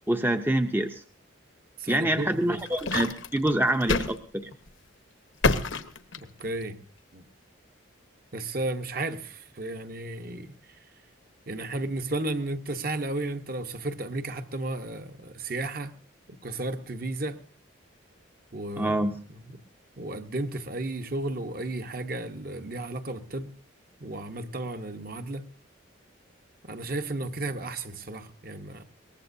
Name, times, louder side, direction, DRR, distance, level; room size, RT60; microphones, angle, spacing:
voice 1, 0.1-1.0 1.9-4.5 18.8-19.1, right 1 dB, 10° right, 0.6 m, -26 dB
voice 2, 1.8-2.6 6.2-6.8 7.1-7.2 8.3-10.5 11.5-15.9 16.3-17.4 18.5-19.0 19.3-19.4 20.0-23.5 24.0-25.4 26.6-28.8, right 2 dB, 45° right, 1.0 m, -33 dB
sound 1, 2.3-4.2 4.5-4.7 5.4-6.6, left 3 dB, 80° left, 1.1 m, -27 dB
22.0 x 19.0 x 2.7 m
head